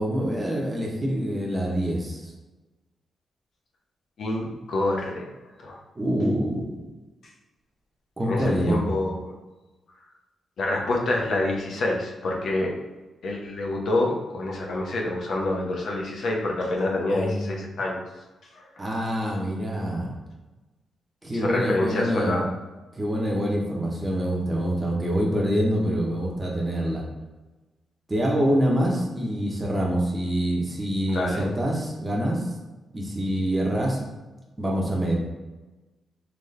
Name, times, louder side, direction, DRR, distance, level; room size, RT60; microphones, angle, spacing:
voice 1, 0.0-2.3 5.9-6.7 8.2-8.8 17.1-17.5 18.8-20.1 21.2-22.4 23.0-27.0 28.1-32.4 32.9-34.0 34.6-35.2, equal, 20° right, -2 dB, 0.9 m, -25 dB
voice 2, 4.2-5.3 5.6-5.8 8.2-9.3 10.6-12.7 13.2-18.0 18.5-18.6 21.3-22.4 31.1-31.5, left 2 dB, 65° left, -1 dB, 0.8 m, -27 dB
4.0 x 3.1 x 3.3 m, 1.1 s
wide cardioid pair, 130°, 0 cm